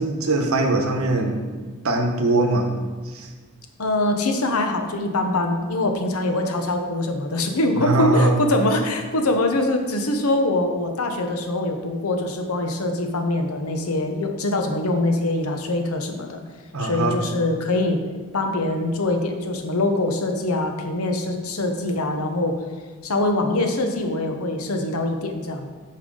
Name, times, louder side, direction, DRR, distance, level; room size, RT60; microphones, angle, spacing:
voice 1, 0.0-1.4 1.8-2.7 3.0-3.3 7.8-8.4 16.7-17.2, right 2 dB, 75° right, 4 dB, 1.0 m, -21 dB
voice 2, 3.8-16.4 16.8-18.0 18.3-22.6 23.0-25.7, left 2 dB, 85° left, 5 dB, 0.9 m, -23 dB
8.6 x 5.6 x 3.8 m, 1.4 s
head